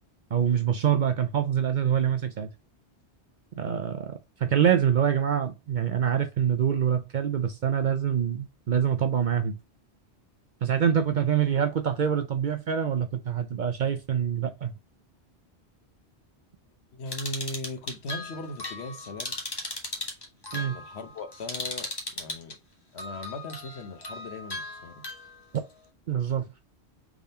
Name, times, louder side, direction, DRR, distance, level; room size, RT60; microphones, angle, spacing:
voice 1, 0.3-2.5 3.6-9.6 10.6-14.7 20.5-20.8 26.1-26.5, right 8 dB, 55° right, 0.6 m, -25 dB
voice 2, 16.9-19.4 20.5-22.6 22.9-25.0, left 2 dB, 70° left, 1.2 m, -39 dB
sound 1, 17.1-22.5 23.0-25.6, left 2 dB, 25° left, 0.9 m, -37 dB
3.6 x 3.6 x 4.1 m
omnidirectional pair, 1.1 m